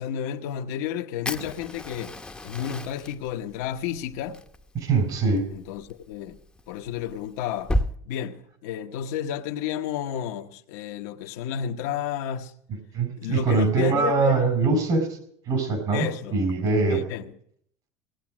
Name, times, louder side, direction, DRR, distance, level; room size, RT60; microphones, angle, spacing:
voice 1, 0.0-2.1 2.4-4.4 5.5-6.3 6.7-7.7 8.0-12.5 13.2-14.4 15.9-16.4 16.9-17.3, left 9 dB, 80° left, 1.0 m, -31 dB
Fire, 1.2-7.9, left 1 dB, 10° left, 0.8 m, -34 dB
voice 2, 4.8-5.4 12.9-15.1 15.5-17.0, right 4 dB, 55° right, 4.5 m, -23 dB
18.0 x 8.5 x 6.1 m
supercardioid pair, 105°, 8 cm